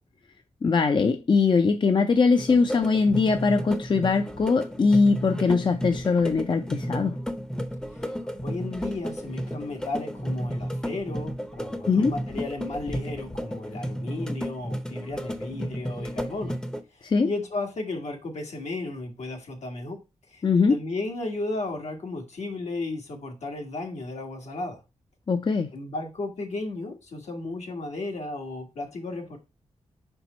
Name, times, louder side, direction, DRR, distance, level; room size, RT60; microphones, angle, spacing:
voice 1, 0.6-7.2 11.9-12.1 17.0-17.3 20.4-20.8 25.3-25.7, left 4 dB, 45° left, 0.5 m, -21 dB
sound 1, 2.4-16.8, equal, 5° left, 0.7 m, -33 dB
voice 2, 8.4-16.6 16.9-20.0 20.3-20.4 20.7-24.8 25.7-29.4, left 2 dB, 75° left, 1.6 m, -34 dB
5.0 x 4.4 x 4.2 m
wide cardioid pair, 95°, 11 cm